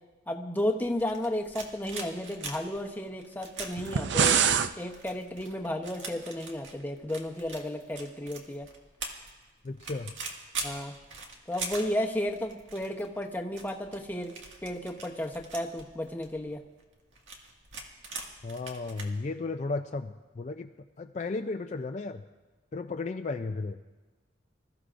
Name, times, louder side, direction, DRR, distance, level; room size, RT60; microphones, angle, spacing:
voice 1, 0.3-8.7 10.6-10.9 11.5-14.3 14.6-16.6, left 1 dB, 10° left, 2 dB, 0.8 m, -33 dB
sound 1, 0.8-19.0, right 3 dB, 85° right, 2.0 m, -42 dB
sound 2, 3.8-4.7, right 7 dB, 65° right, 0.5 m, -24 dB
voice 2, 9.6-10.1 18.4-20.7 21.0-22.2 22.7-23.8, left 3 dB, 35° left, 6 dB, 0.4 m, -34 dB
26.0 x 14.5 x 2.6 m, 1.3 s
head